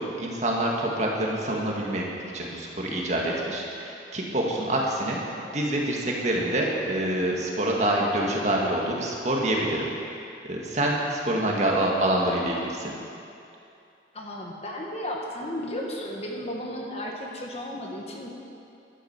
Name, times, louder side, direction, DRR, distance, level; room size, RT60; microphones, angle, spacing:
voice 1, 0.0-2.1 2.3-5.2 5.5-9.9 10.4-12.9, right 1 dB, 40° right, -2 dB, 1.9 m, -26 dB
voice 2, 11.1-11.5 14.1-18.3, left 1 dB, 35° left, -1 dB, 1.6 m, -34 dB
12.0 x 10.0 x 7.4 m, 2.6 s
head